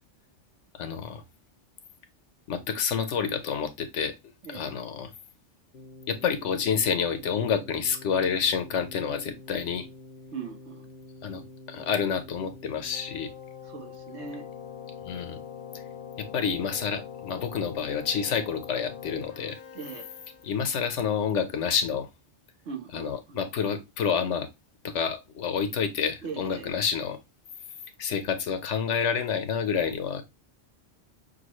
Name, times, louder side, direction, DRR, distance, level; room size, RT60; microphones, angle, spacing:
voice 1, 0.7-1.2 2.5-4.1 4.5-5.1 6.1-9.9 11.2-11.4 11.7-13.3 15.0-15.4 16.2-19.6 20.4-22.1 22.9-24.5 24.8-27.2 28.0-30.2, left 6 dB, 85° left, 1.1 m, -28 dB
Keyboard (musical), 5.7-20.8, left 6 dB, 55° left, 0.8 m, -44 dB
voice 2, 10.3-10.9 13.6-14.5 19.7-20.1 22.6-23.5 26.2-26.7, right 5 dB, 70° right, 1.3 m, -40 dB
6.3 x 2.3 x 3.0 m
omnidirectional pair, 1.2 m